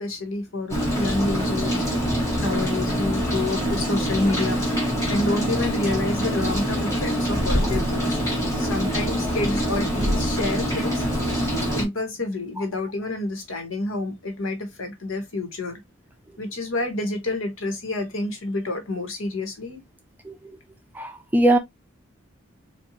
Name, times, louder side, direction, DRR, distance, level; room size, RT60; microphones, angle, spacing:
voice 1, 0.0-8.2 8.5-11.0 11.7-15.8 16.4-19.8, left 2 dB, 80° left, 1.4 m, -28 dB
Rain, 0.7-11.8, equal, 15° left, 1.4 m, -24 dB
voice 2, 21.0-21.6, right 1 dB, 10° right, 0.4 m, -19 dB
4.3 x 2.4 x 2.8 m
head